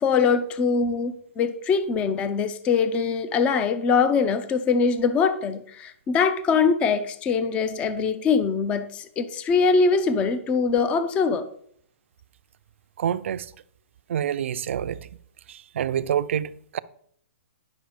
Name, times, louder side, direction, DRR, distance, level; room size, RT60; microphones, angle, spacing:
voice 1, 0.0-11.5, left 5 dB, 15° left, 0.5 m, -23 dB
voice 2, 13.0-13.5 14.1-15.1 15.5-16.8, right 9 dB, 60° right, 0.5 m, -27 dB
10.5 x 6.2 x 5.1 m
hypercardioid pair, 165°, 7 cm